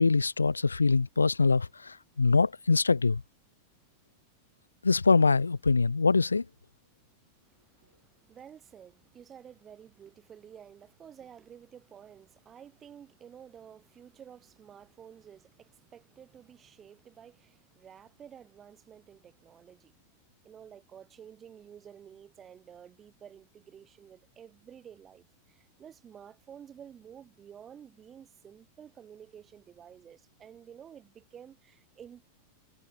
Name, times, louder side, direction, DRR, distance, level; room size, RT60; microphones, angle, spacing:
voice 1, 0.0-3.2 4.8-6.4, left 4 dB, 80° left, 0.3 m, -24 dB
voice 2, 7.5-19.9 20.4-32.3, right 8 dB, 25° right, 2.2 m, -52 dB
figure-of-eight pair, 90°, 0 cm